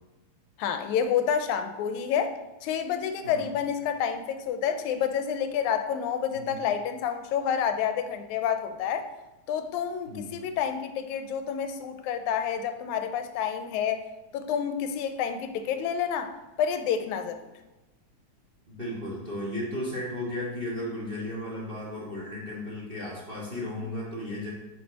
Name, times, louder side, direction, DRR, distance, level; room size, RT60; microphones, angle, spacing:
voice 1, 0.6-2.3 2.6-9.1 9.5-14.0 14.3-17.5, left 8 dB, 85° left, 8 dB, 1.9 m, -29 dB
voice 2, 10.1-10.4 18.7-24.5, left 1 dB, 25° right, -4 dB, 1.6 m, -35 dB
8.0 x 6.5 x 3.9 m, 1.1 s
omnidirectional pair, 3.4 m